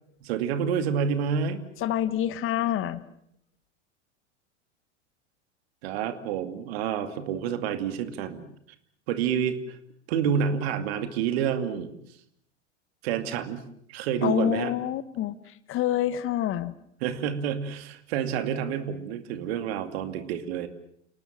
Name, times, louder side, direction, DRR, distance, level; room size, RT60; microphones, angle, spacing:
voice 1, 0.2-1.6 5.8-8.4 9.1-9.8 10.1-11.9 13.0-13.6 13.9-14.7 17.0-20.7, right 7 dB, 55° right, 9 dB, 2.5 m, -28 dB
voice 2, 1.8-3.0 14.2-16.7, left 11 dB, 35° left, 15 dB, 1.4 m, -27 dB
29.5 x 19.5 x 7.5 m, 0.72 s
figure-of-eight pair, 85°, 36 cm